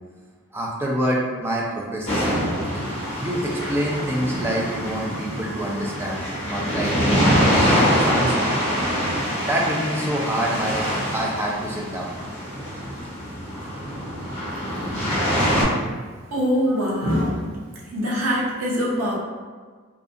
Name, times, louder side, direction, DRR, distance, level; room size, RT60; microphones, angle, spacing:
voice 1, 0.5-2.4 3.2-8.6 9.5-10.9 11.1-12.1 16.7-16.8, right 1 dB, 10° right, -3 dB, 0.3 m, -27 dB
sound 1, 2.1-15.6, equal, 30° left, 0.9 m, -24 dB
voice 2, 16.3-19.2, equal, 85° right, -5 dB, 0.6 m, -23 dB
2.4 x 2.3 x 2.6 m, 1.5 s
head